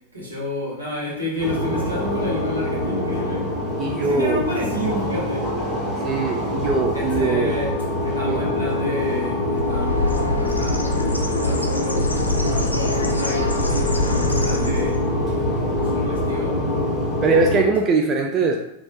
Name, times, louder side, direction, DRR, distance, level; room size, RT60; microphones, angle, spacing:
voice 1, 0.1-3.5 4.0-5.5 6.9-7.7 8.0-12.1 12.5-15.0 15.3-16.6, left 1 dB, 80° right, -6 dB, 1.1 m, -30 dB
sound 1, 1.4-17.7, left 1 dB, 10° right, 1.3 m, -24 dB
voice 2, 3.8-4.4 6.0-7.6 8.3-8.4 17.2-18.6, right 4 dB, 30° right, 2 dB, 0.3 m, -21 dB
Bird, 9.5-15.1, left 2 dB, 80° left, 0.3 m, -25 dB
3.0 x 2.4 x 2.6 m, 0.80 s
figure-of-eight pair, 90°, 0 cm